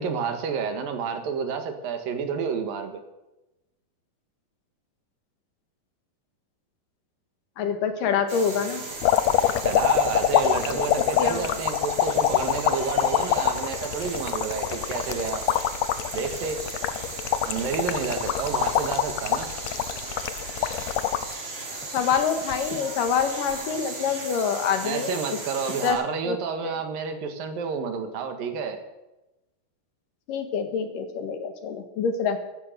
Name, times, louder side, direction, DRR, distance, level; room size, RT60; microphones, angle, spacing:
voice 1, 0.0-3.0 9.6-15.5 16.1-16.6 17.5-19.5 24.8-28.8, right 6 dB, 75° right, 7 dB, 3.2 m, -30 dB
voice 2, 7.6-8.8 11.2-11.6 21.9-25.2 25.8-26.0 26.2-26.4 26.6-26.8 30.3-32.4, left 6 dB, 70° left, 7 dB, 3.1 m, -26 dB
sound 1, 8.3-25.9, right 3 dB, 40° right, 4.5 m, -36 dB
sound 2, 9.0-21.3 21.8-22.6 23.5-23.7, left 11 dB, 90° left, 1.5 m, -25 dB
15.0 x 14.5 x 6.7 m, 0.99 s
omnidirectional pair, 4.2 m